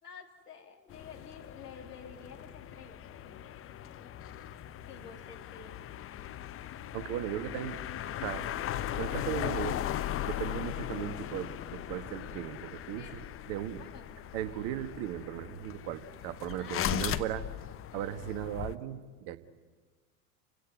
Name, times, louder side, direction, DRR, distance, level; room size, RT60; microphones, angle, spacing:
voice 1, 0.0-4.1 4.9-5.9 13.0-13.2 13.8-14.3 16.6-17.3, left 6 dB, 85° left, 5 dB, 2.9 m, -51 dB
sound 1, 0.9-18.8, left 11 dB, 30° left, 0.9 m, -38 dB
voice 2, 6.9-7.8 8.2-8.5 9.0-9.8 10.2-13.8 14.3-17.4 17.9-19.4, right 12 dB, 50° right, 11 dB, 1.7 m, -37 dB
29.5 x 17.0 x 9.6 m, 1.4 s
hypercardioid pair, 90°, 46 cm